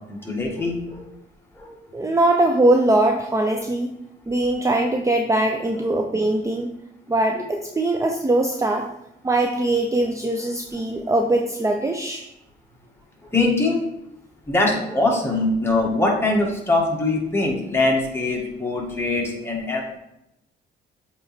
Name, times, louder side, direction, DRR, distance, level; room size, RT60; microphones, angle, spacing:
voice 1, 0.1-1.0 1.5-1.8 7.4-7.5 13.3-13.8 14.5-20.0, left 2 dB, 10° left, -1 dB, 1.8 m, -22 dB
voice 2, 1.9-3.9 4.3-6.7 7.1-8.9 9.2-12.2, right 2 dB, 15° right, 3 dB, 0.6 m, -21 dB
7.7 x 3.1 x 4.4 m, 0.84 s
cardioid pair, 90°, 19 cm